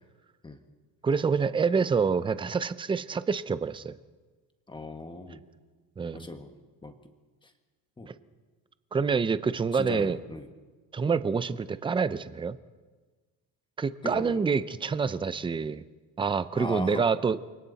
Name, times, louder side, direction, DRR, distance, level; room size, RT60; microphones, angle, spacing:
voice 1, 1.0-3.9 6.0-6.3 8.1-8.2 8.9-10.2 10.9-12.6 13.8-15.8 16.2-17.5, right 5 dB, 15° right, 14 dB, 0.5 m, -27 dB
voice 2, 4.7-5.4 6.1-6.5 6.8-6.9 8.0-8.1 9.7-10.5 14.0-14.4 16.5-17.1, left 2 dB, 15° left, 6 dB, 1.6 m, -38 dB
29.0 x 23.5 x 4.1 m, 1.4 s
cardioid pair, 140°, 36 cm